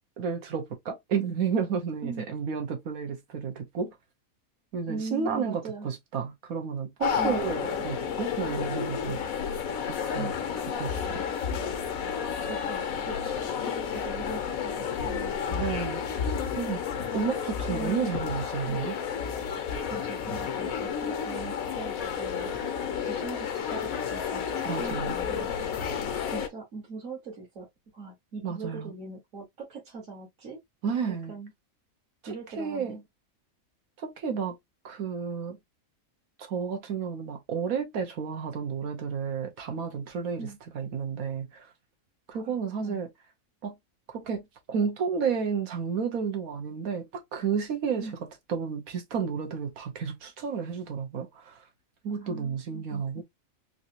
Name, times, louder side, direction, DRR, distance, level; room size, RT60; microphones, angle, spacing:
voice 1, 0.2-4.0 4.7-9.2 10.1-10.3 10.8-11.2 15.5-16.3 16.5-16.8 17.1-19.0 24.6-25.1 28.4-28.9 30.8-31.4 32.6-33.0 34.0-34.6 34.8-35.6 36.4-41.7 42.3-43.1 43.6-43.7 44.1-48.1 48.5-51.6 52.0-53.2, right 6 dB, 85° right, 1.4 m, -31 dB
voice 2, 4.9-5.9 7.2-7.4 10.2-10.3 12.4-13.3 13.6-15.4 17.6-18.1 18.7-18.8 19.5-19.6 19.9-22.5 23.1-25.6 26.3-27.7 27.9-30.6 31.3-31.5 32.3-33.0 40.4-40.6 42.3-43.0 48.0-48.2 52.2-53.2, right 4 dB, 70° right, 1.8 m, -41 dB
sound 1, 7.0-26.5, left 7 dB, 80° left, 1.2 m, -31 dB
3.9 x 2.7 x 2.8 m
omnidirectional pair, 1.4 m